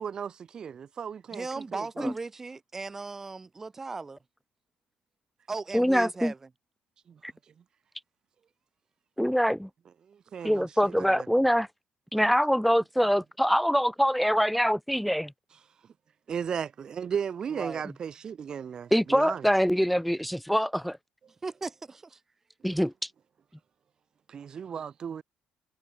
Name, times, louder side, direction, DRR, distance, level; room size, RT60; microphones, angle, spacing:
voice 1, 0.0-1.5 1.7-2.1 10.1-11.3 16.3-19.5 22.7-22.8 24.3-25.2, right 7 dB, 35° right, 2.0 m, -35 dB
voice 2, 1.3-4.2 5.5-6.4 17.5-17.8 21.4-22.2, right 3 dB, 15° right, 4.2 m, -37 dB
voice 3, 5.7-6.3 7.2-7.3 9.2-9.7 10.4-11.7 12.1-15.3 18.9-21.0 22.6-22.9, equal, ahead, 0.7 m, -24 dB
cardioid pair, 150°, 2 cm